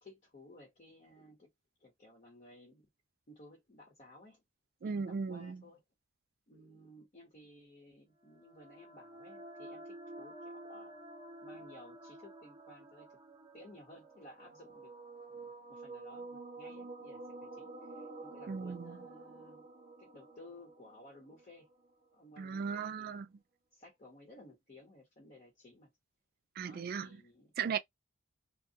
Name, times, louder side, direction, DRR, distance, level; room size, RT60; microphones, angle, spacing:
voice 1, 0.0-1.5 1.8-2.9 3.3-4.4 4.8-5.8 6.5-11.0 11.4-13.2 13.5-14.9 15.3-19.7 20.0-21.7 22.1-23.2 23.7-25.9 26.6-27.5, left 1 dB, 40° left, 1.1 m, -57 dB
voice 2, 4.8-5.6 18.5-19.0 22.4-23.3 26.6-27.1 27.6-27.8, right 6 dB, 50° right, 0.3 m, -37 dB
sound 1, 8.3-21.9, right 2 dB, 30° right, 0.7 m, -50 dB
2.2 x 2.2 x 2.8 m
head